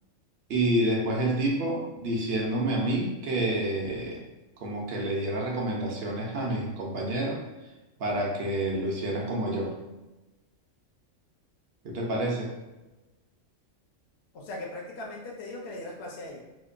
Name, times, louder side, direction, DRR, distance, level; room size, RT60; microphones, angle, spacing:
voice 1, 0.5-4.2 4.6-7.4 8.0-9.7 11.8-12.5, right 1 dB, 60° right, -1 dB, 0.7 m, -28 dB
voice 2, 14.3-16.4, left 2 dB, 65° left, -2 dB, 0.7 m, -39 dB
2.8 x 2.1 x 2.4 m, 1.1 s
omnidirectional pair, 1.3 m